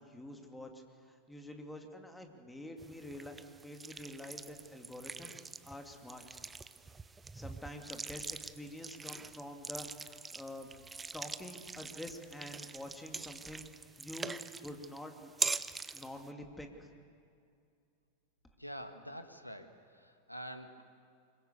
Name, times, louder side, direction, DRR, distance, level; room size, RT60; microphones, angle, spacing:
voice 1, 0.0-6.4 7.3-10.7 11.1-15.3 15.9-16.9, left 1 dB, 5° left, 4 dB, 2.5 m, -47 dB
sound 1, 2.8-16.3, right 4 dB, 15° right, 0.7 m, -43 dB
voice 2, 18.6-20.8, equal, 90° left, 7 dB, 1.5 m, -46 dB
25.5 x 22.5 x 7.0 m, 2.4 s
figure-of-eight pair, 90°, 0 cm